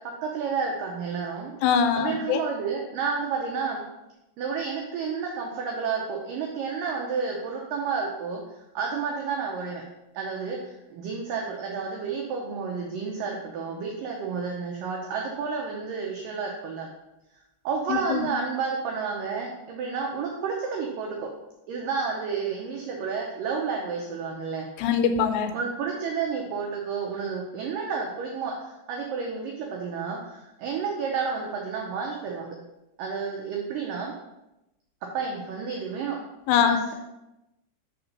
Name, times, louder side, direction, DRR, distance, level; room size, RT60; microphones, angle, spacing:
voice 1, 0.2-1.6 1.9-3.8 4.4-8.4 8.7-9.8 10.1-16.9 17.7-21.2 21.7-24.7 25.5-32.6 33.0-34.1 35.1-36.2 36.6-36.9, right 5 dB, 85° right, 0 dB, 1.9 m, -30 dB
voice 2, 1.6-2.4 17.9-18.3 24.8-25.5 36.5-36.8, left 7 dB, 85° left, 7 dB, 2.8 m, -23 dB
5.9 x 4.0 x 5.8 m, 0.93 s
omnidirectional pair, 5.0 m